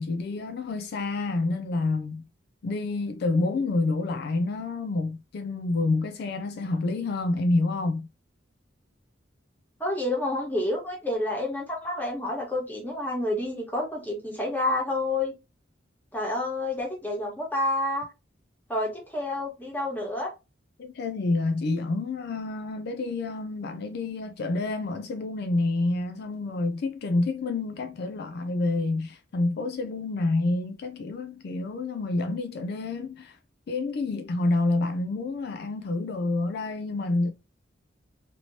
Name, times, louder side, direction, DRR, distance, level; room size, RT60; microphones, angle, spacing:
voice 1, 0.0-2.2 2.6-8.1 20.8-33.4 33.7-37.3, left 2 dB, 60° left, 0.4 m, -28 dB
voice 2, 9.8-15.3 16.1-18.1 18.7-20.3, left 1 dB, 10° left, 1.3 m, -29 dB
3.0 x 2.9 x 2.7 m
head